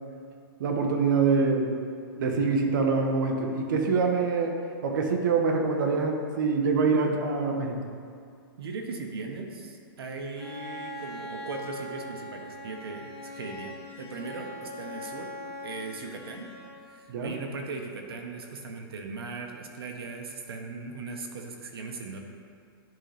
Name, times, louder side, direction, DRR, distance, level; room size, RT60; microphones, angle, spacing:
voice 1, 0.6-1.7 2.2-4.5 4.8-7.8 17.1-17.3, right 4 dB, 55° right, 2 dB, 1.0 m, -25 dB
voice 2, 8.6-15.3 15.6-16.5 16.9-22.2, right 4 dB, 85° right, 2 dB, 1.0 m, -38 dB
Bowed string instrument, 10.4-17.1, left 1 dB, 80° left, 1.6 m, -41 dB
10.5 x 3.9 x 3.4 m, 2.3 s
hypercardioid pair, 165°, 12 cm